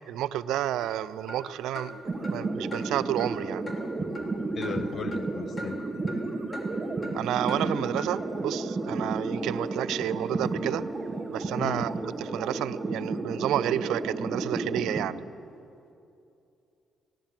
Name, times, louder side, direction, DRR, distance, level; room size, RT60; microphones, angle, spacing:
voice 1, 0.1-2.0 2.3-3.7 7.1-10.8 11.3-11.9 12.2-15.2, right 12 dB, 85° right, 16 dB, 0.4 m, -30 dB
sound 1, 0.8-0.9 1.3-1.4 1.7-1.9 2.2-2.4 2.7-2.8 3.2-3.3 3.7-3.8 4.1-4.3 4.6-4.8 5.1-5.2 5.6-5.7 6.1-6.2 6.5-6.7 7.0-7.1 7.5-7.6 8.0-8.1, left 1 dB, 30° left, 2.9 m, -39 dB
sound 2, 2.0-15.1, right 3 dB, 25° right, 1.3 m, -32 dB
sound 3, 2.1-2.2 2.6-6.3 7.9-15.2, right 1 dB, 15° left, 4.1 m, -46 dB
voice 2, 4.5-5.8 6.1-6.2 11.6-11.9, left 6 dB, 50° left, 11 dB, 0.9 m, -36 dB
17.0 x 11.5 x 7.3 m, 2.7 s
cardioid pair, 90°, 0 cm